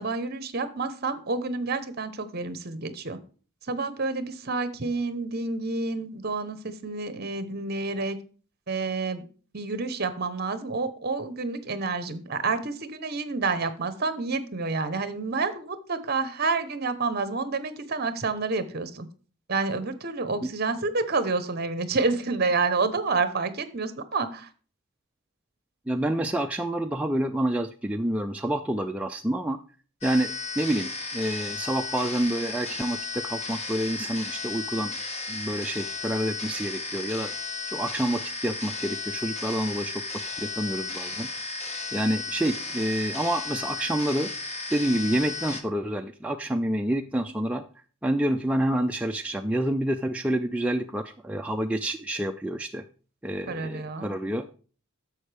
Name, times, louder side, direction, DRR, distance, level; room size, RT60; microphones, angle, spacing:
voice 1, 0.0-3.2 3.7-8.2 8.7-9.2 9.5-19.1 19.5-24.5 53.5-54.1, right 3 dB, 45° right, 12 dB, 0.9 m, -29 dB
voice 2, 25.9-29.6 30.0-34.9 35.3-37.3 37.7-40.0 40.4-41.3 41.9-44.3 44.7-47.6 48.0-52.8 53.2-54.5, right 1 dB, 5° right, 4 dB, 0.3 m, -28 dB
sound 1, 30.0-45.6, left 3 dB, 30° left, 1.0 m, -34 dB
11.0 x 7.4 x 3.4 m, 0.39 s
head